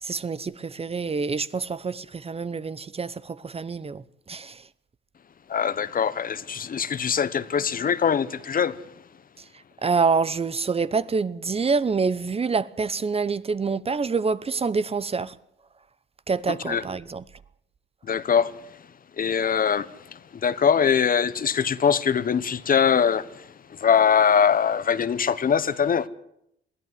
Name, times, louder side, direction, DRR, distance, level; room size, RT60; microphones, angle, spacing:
voice 1, 0.0-4.7 9.4-9.5 9.8-15.4 16.3-17.2, right 4 dB, 30° right, 0.9 m, -26 dB
voice 2, 5.5-8.9 16.5-16.8 18.0-18.9 19.2-26.1, left 7 dB, 45° left, 1.2 m, -23 dB
22.5 x 15.0 x 9.6 m
cardioid pair, 90°, 20 cm